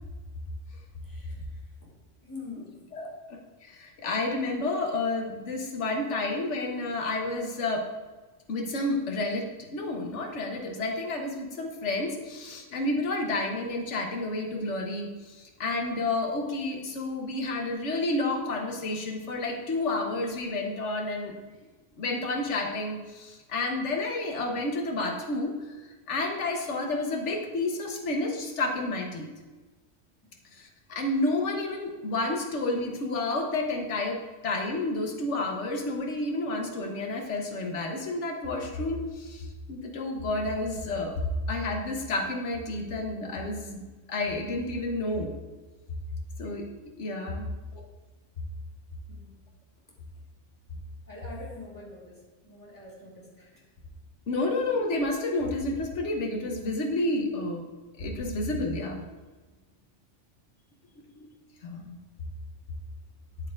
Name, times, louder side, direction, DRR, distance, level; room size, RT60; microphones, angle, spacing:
voice 1, 1.0-1.9 2.2-2.9 21.5-21.6 30.2-30.5 49.1-49.4 51.1-53.6 54.4-54.5 59.4-59.5, left 3 dB, 15° left, -5 dB, 1.9 m, -46 dB
voice 2, 2.9-7.8 8.5-9.5 9.7-21.3 22.0-25.7 26.1-29.3 30.5-41.2 41.5-43.8 44.1-45.3 46.4-46.7 47.0-47.5 47.7-47.9 54.3-57.7 58.0-59.0 61.1-61.3 61.6-62.0, left 2 dB, 75° left, 2 dB, 1.3 m, -30 dB
8.3 x 7.8 x 2.5 m, 1.2 s
omnidirectional pair, 1.2 m